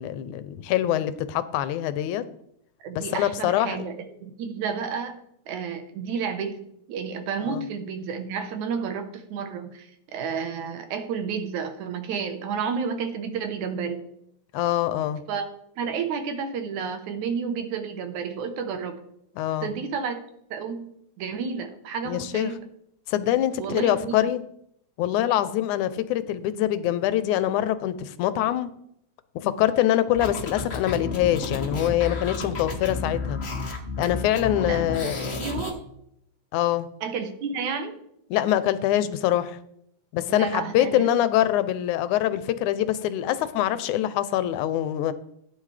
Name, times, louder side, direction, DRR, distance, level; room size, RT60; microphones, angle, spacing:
voice 1, 0.0-2.2 3.0-3.8 7.4-7.6 14.5-15.2 19.4-19.7 22.1-22.5 23.1-24.4 25.0-28.7 29.4-33.4 34.0-35.4 36.5-36.9 38.3-39.6 40.1-45.1, left 12 dB, 80° left, 2.1 m, -24 dB
voice 2, 2.8-3.9 4.2-5.2 5.5-14.0 15.3-15.5 15.8-19.0 19.6-20.2 20.5-22.7 23.6-24.3 34.6-35.8 37.0-38.0 40.3-41.7, right 6 dB, 75° right, 2.4 m, -31 dB
sound 1, 30.1-35.7, left 3 dB, 50° left, 0.7 m, -31 dB
15.5 x 9.6 x 3.3 m
omnidirectional pair, 3.5 m